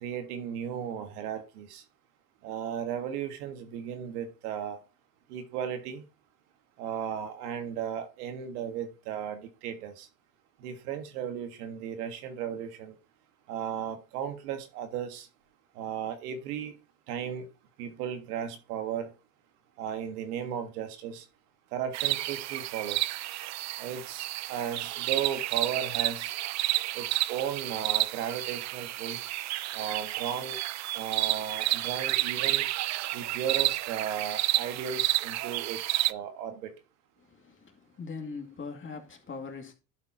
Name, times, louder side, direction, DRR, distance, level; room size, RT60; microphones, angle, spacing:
voice 1, 0.0-1.8 2.4-4.8 5.3-6.0 6.8-10.1 10.6-12.9 13.5-15.3 15.8-16.7 17.1-17.5 17.8-19.1 19.8-21.3 21.7-23.1 23.8-26.4 26.9-29.2 29.7-30.6 30.9-32.7 33.1-36.7, right 8 dB, 85° right, 1.7 m, -35 dB
sound 1, 21.9-36.1, right 17 dB, 40° right, 0.4 m, -31 dB
voice 2, 37.4-39.7, left 4 dB, 25° left, 2.3 m, -41 dB
12.0 x 4.4 x 4.4 m
supercardioid pair, 95°, 44 cm